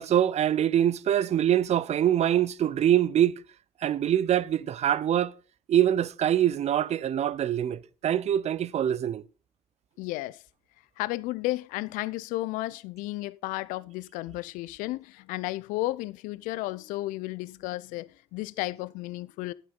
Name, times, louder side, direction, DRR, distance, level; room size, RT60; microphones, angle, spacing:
voice 1, 0.0-3.4 3.8-5.3 5.7-9.2, right 10 dB, 55° right, 0.6 m, -24 dB
voice 2, 10.0-10.4 11.0-19.5, left 18 dB, 75° left, 0.5 m, -33 dB
11.0 x 9.1 x 3.8 m
hypercardioid pair, 60°, 14 cm